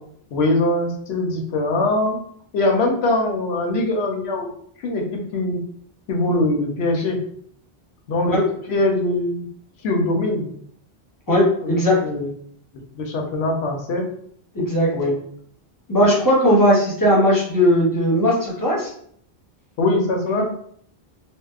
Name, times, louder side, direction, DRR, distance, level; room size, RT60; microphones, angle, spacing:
voice 1, 0.3-2.2 2.5-4.5 4.8-5.6 6.1-7.2 8.1-8.4 8.7-9.5 9.8-10.5 11.6-12.3 12.9-14.1 14.9-15.2 19.8-20.4, left 2 dB, 85° left, 2 dB, 0.9 m, -22 dB
voice 2, 11.3-12.0 14.5-14.9 15.9-18.9 20.4-20.5, equal, 20° left, -5 dB, 0.7 m, -17 dB
2.7 x 2.0 x 2.3 m, 0.63 s
omnidirectional pair, 1.0 m